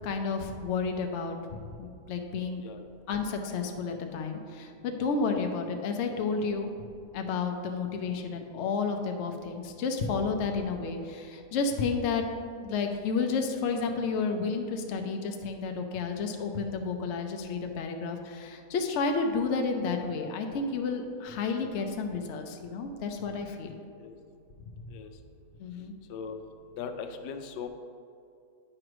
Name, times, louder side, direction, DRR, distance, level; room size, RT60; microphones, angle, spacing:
voice 1, 0.0-2.6 3.1-6.7 7.1-12.2 12.6-23.8 25.6-25.9, left 4 dB, 60° left, 4 dB, 0.7 m, -31 dB
voice 2, 26.8-27.7, left 6 dB, 90° left, 7 dB, 1.2 m, -38 dB
8.8 x 3.1 x 6.0 m, 2.4 s
omnidirectional pair, 1.8 m